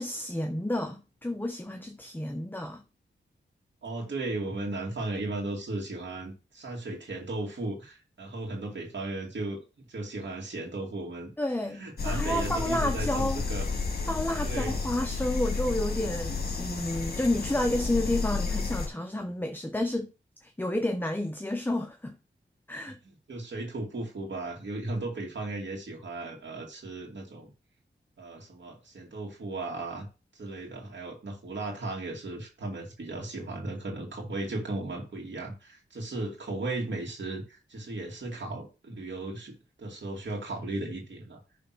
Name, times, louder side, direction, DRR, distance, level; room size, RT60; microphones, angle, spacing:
voice 1, 0.0-2.8 11.4-13.4 14.1-20.1 20.4-22.2 22.7-23.0, left 1 dB, 10° left, 0.9 m, -30 dB
voice 2, 3.8-11.3 11.7-13.7 14.3-14.9 22.9-23.0 23.3-27.5 28.2-30.1 30.3-41.4, right 2 dB, 70° right, 2.4 m, -36 dB
sound 1, 12.0-18.9, left 4 dB, 55° left, 1.9 m, -31 dB
10.5 x 3.5 x 6.1 m
wide cardioid pair, 75°, 20 cm